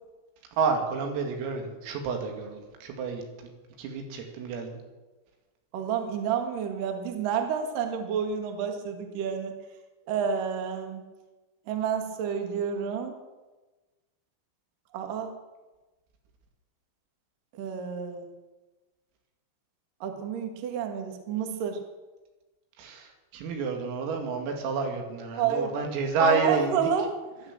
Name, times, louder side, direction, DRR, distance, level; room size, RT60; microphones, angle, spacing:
voice 1, 0.5-3.2 3.8-4.7 22.8-26.8, right 4 dB, 90° right, 3 dB, 4.9 m, -29 dB
voice 2, 5.7-9.5 10.1-11.1 11.7-13.1 14.9-15.3 17.5-18.3 20.0-21.8 25.4-25.7 26.2-27.1, right 7 dB, 55° right, 5 dB, 2.7 m, -29 dB
17.0 x 11.5 x 7.4 m, 1.2 s
omnidirectional pair, 5.9 m